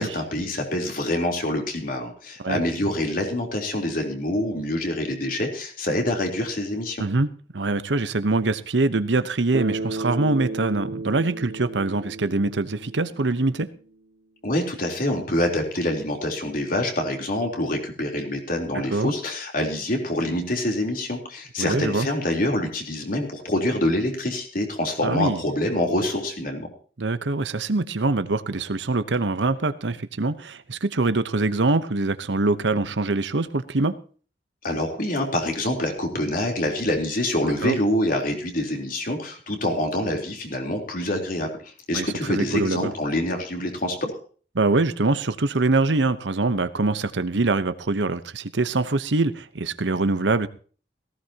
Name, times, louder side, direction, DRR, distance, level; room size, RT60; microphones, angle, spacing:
voice 1, 0.0-7.0 14.4-26.7 34.6-41.5 41.9-44.1, left 1 dB, 50° left, 2 dB, 3.7 m, -26 dB
voice 2, 7.0-13.7 18.7-19.1 21.6-22.1 25.0-25.4 27.0-33.9 37.6-37.8 41.9-42.9 44.5-50.5, right 3 dB, 85° right, 13 dB, 1.0 m, -24 dB
Bass guitar, 9.5-13.8, right 3 dB, 65° right, 2.6 m, -33 dB
18.0 x 16.0 x 2.9 m, 0.41 s
head